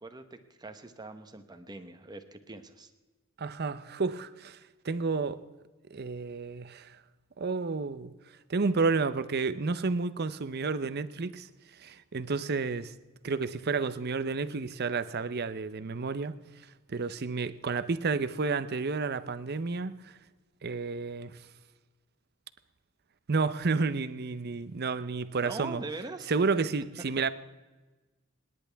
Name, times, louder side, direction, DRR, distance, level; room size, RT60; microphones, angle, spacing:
voice 1, 0.0-2.9 25.4-26.3, right 3 dB, 20° right, 8 dB, 1.1 m, -42 dB
voice 2, 3.4-4.6 4.8-5.4 5.9-6.9 7.4-8.1 8.5-11.5 11.8-12.9 13.2-16.4 16.9-20.0 20.6-21.3 23.3-25.8 26.3-27.3, right 4 dB, 50° right, 13 dB, 0.7 m, -31 dB
27.0 x 10.5 x 3.5 m, 1.2 s
head